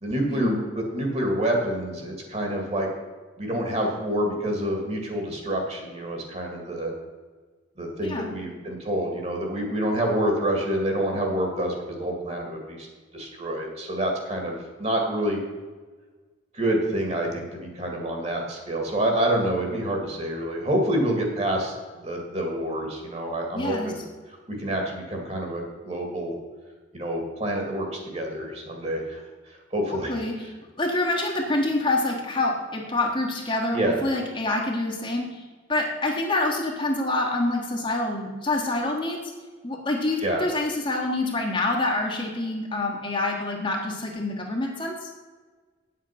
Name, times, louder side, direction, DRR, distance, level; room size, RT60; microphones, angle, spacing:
voice 1, 0.0-2.9 3.4-6.9 7.8-12.9 13.1-15.4 16.5-21.7 22.0-24.0 24.6-26.3 26.9-29.2 29.5-30.1 33.7-34.0 40.2-40.4, right 1 dB, 35° right, 1 dB, 2.1 m, -27 dB
voice 2, 8.0-8.3 23.5-23.9 30.1-30.3 30.8-35.4 35.7-39.2 39.6-45.1, left 2 dB, 25° left, 0 dB, 1.3 m, -26 dB
9.1 x 7.7 x 5.8 m, 1.4 s
head